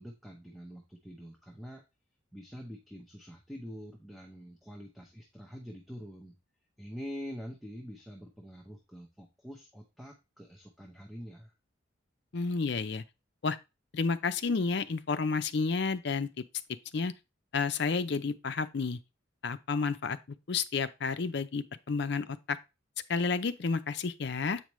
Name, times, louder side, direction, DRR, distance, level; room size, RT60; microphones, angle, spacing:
voice 1, 0.0-1.8 2.3-6.3 6.8-11.5, equal, ahead, 0.8 m, -45 dB
voice 2, 12.3-13.0 13.4-13.6 13.9-16.3 16.9-17.1 17.5-19.0 19.4-22.6 23.1-24.6, left 4 dB, 55° left, 0.5 m, -31 dB
8.1 x 5.1 x 3.1 m
head